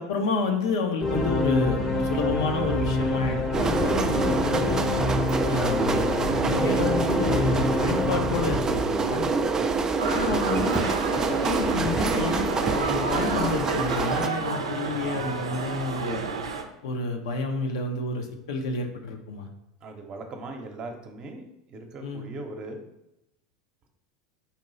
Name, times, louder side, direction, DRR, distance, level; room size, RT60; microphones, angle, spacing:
voice 1, 0.0-4.9 5.5-9.3 10.1-16.2 16.8-19.5 22.0-22.3, left 3 dB, 70° left, 3 dB, 0.7 m, -30 dB
sound 1, 1.0-9.4, left 2 dB, 15° left, 0.7 m, -27 dB
sound 2, 3.5-14.3, right 4 dB, 20° right, 0.4 m, -26 dB
voice 2, 9.5-9.9 19.8-22.8, right 2 dB, 35° right, 4 dB, 0.8 m, -40 dB
sound 3, 10.0-16.6, right 4 dB, 80° right, 0.5 m, -31 dB
4.2 x 3.0 x 4.0 m, 0.89 s
hypercardioid pair, 80°, 3 cm